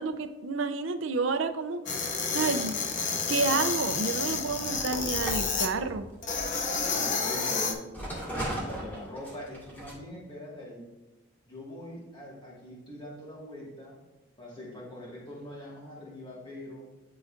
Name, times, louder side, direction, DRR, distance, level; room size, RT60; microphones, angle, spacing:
voice 1, 0.0-2.8 3.3-6.1, right 4 dB, 85° right, 9 dB, 0.5 m, -30 dB
sound 1, 1.9-5.7 6.2-7.7, left 5 dB, 40° left, 0.6 m, -30 dB
sound 2, 4.3-7.4 7.9-9.9, right 1 dB, 10° left, 2.2 m, -38 dB
voice 2, 6.9-7.9 8.3-10.9 11.5-14.0 14.4-16.9, left 1 dB, 25° left, -5 dB, 1.8 m, -42 dB
11.5 x 3.9 x 2.6 m, 1.1 s
head